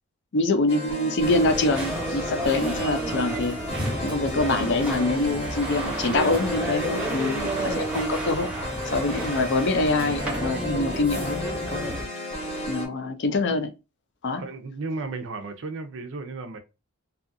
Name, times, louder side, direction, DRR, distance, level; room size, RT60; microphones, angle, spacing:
voice 1, 0.3-3.6 4.0-8.5 8.8-12.0 12.7-13.7 14.2-14.4, left 2 dB, 55° left, 0.5 m, -25 dB
sound 1, 0.7-12.9, equal, 30° left, 0.8 m, -33 dB
sound 2, 1.2-12.0, right 1 dB, 5° right, 0.8 m, -31 dB
voice 2, 14.4-16.6, right 3 dB, 60° right, 0.6 m, -35 dB
2.6 x 2.4 x 2.5 m
head